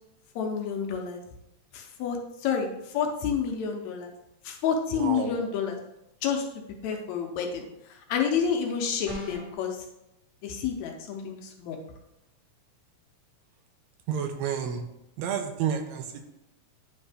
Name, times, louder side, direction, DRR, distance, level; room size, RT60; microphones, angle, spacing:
voice 1, 0.4-1.2 1.7-4.1 4.4-5.8 6.2-6.5 6.8-9.8 10.4-11.8, left 6 dB, 75° left, 3 dB, 2.0 m, -29 dB
voice 2, 5.0-5.4 14.1-14.8 15.2-16.2, right 7 dB, 75° right, 5 dB, 1.9 m, -30 dB
sound 1, 9.0-9.6, left 1 dB, 15° right, 1.4 m, -36 dB
9.4 x 3.6 x 3.4 m, 0.86 s
omnidirectional pair, 3.3 m